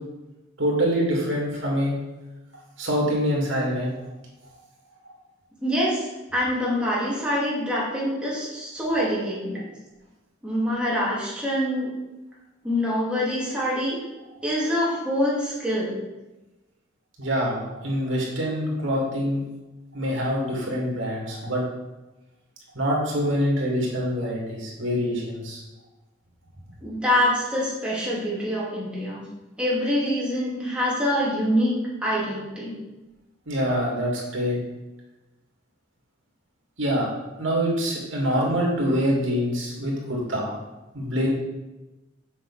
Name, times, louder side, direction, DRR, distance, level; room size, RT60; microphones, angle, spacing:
voice 1, 0.6-2.0 2.8-3.9 17.2-19.4 19.9-21.6 22.7-25.6 33.5-34.6 36.8-37.1 37.4-40.6 40.9-41.3, equal, 70° right, -3 dB, 2.7 m, -25 dB
voice 2, 5.6-9.6 10.4-11.9 12.6-14.0 14.4-16.0 26.8-29.3 29.6-31.7 32.0-32.8, equal, 5° right, -7 dB, 2.5 m, -25 dB
7.4 x 6.3 x 4.2 m, 1.0 s
head